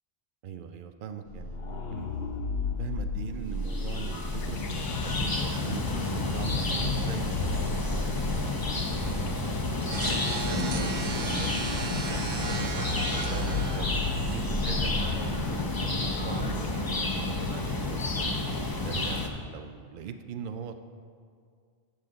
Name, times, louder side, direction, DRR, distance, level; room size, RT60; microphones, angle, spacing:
voice 1, 0.4-2.1 2.8-8.1 8.6-11.5 12.1-14.0 14.2-18.3 18.8-20.8, right 7 dB, 60° right, 7 dB, 0.5 m, -40 dB
sound 1, 1.3-16.7, left 4 dB, 60° left, 0.8 m, -35 dB
sound 2, 3.6-19.3, left 2 dB, 35° left, 0.3 m, -31 dB
sound 3, 9.9-14.9, right 3 dB, 85° right, 1.3 m, -36 dB
10.0 x 6.4 x 3.9 m, 2.2 s
omnidirectional pair, 1.3 m